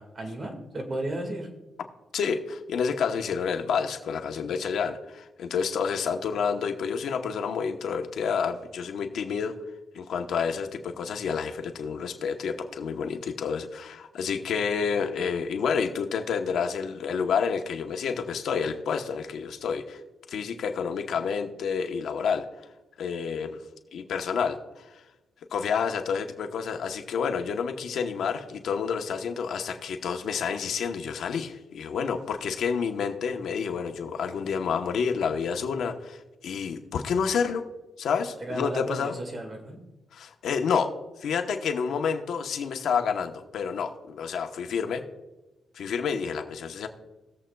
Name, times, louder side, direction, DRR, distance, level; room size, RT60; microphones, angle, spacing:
voice 1, 0.0-1.5 38.4-39.8, right 1 dB, 35° right, 4 dB, 1.8 m, -34 dB
voice 2, 2.1-9.5 9.9-20.0 20.3-22.4 23.0-23.6 23.9-25.0 25.5-37.6 38.0-39.1 40.1-40.9 41.2-45.0 45.7-46.9, left 6 dB, 75° left, 5 dB, 1.0 m, -29 dB
19.5 x 7.6 x 2.3 m, 1.0 s
cardioid pair, 115°, 0 cm